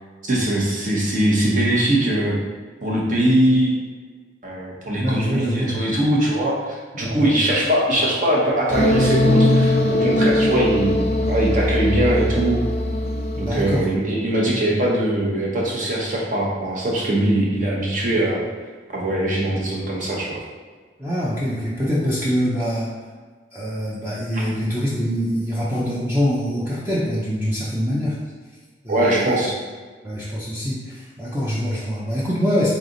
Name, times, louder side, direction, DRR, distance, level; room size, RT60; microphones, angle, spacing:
voice 1, 0.3-2.4 2.8-3.7 4.4-12.6 13.4-18.4 18.9-20.4 28.9-29.5, right 1 dB, 45° right, -4 dB, 1.1 m, -21 dB
voice 2, 5.0-5.8 7.1-7.3 13.3-13.9 21.0-22.9 23.5-28.2 28.8-29.4 30.0-32.7, equal, 15° right, -8 dB, 0.6 m, -24 dB
sound 1, 8.7-13.8, left 1 dB, 35° left, 0.4 m, -20 dB
4.0 x 3.3 x 3.9 m, 1.5 s
head